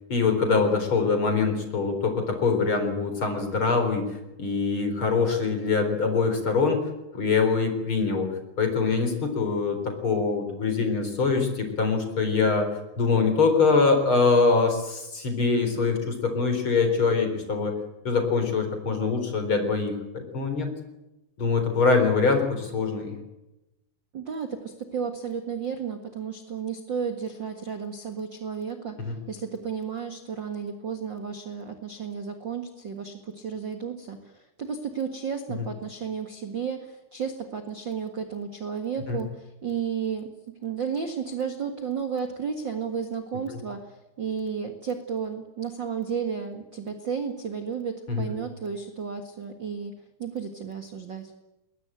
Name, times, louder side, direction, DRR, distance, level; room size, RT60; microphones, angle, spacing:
voice 1, 0.1-6.8 7.1-17.7 18.0-20.7 21.4-23.1 29.0-29.2 39.1-39.2 43.5-43.6 48.1-48.3, left 4 dB, 30° left, 6 dB, 4.4 m, -24 dB
voice 2, 24.1-40.3 40.6-49.9 50.2-51.3, right 6 dB, 60° right, 5 dB, 1.2 m, -33 dB
21.0 x 21.0 x 9.1 m, 0.96 s
omnidirectional pair, 5.0 m